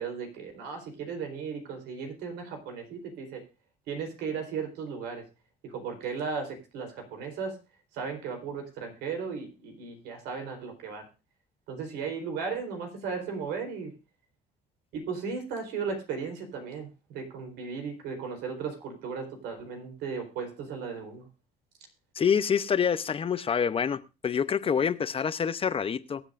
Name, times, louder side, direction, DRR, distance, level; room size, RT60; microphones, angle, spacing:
voice 1, 0.0-3.4 3.9-5.2 5.6-7.6 7.9-11.0 11.7-13.9 14.9-21.3, right 5 dB, 90° right, 4 dB, 4.0 m, -36 dB
voice 2, 22.2-26.2, left 7 dB, 35° left, 14 dB, 0.7 m, -27 dB
23.5 x 8.0 x 2.6 m, 0.29 s
cardioid pair, 110°, 17 cm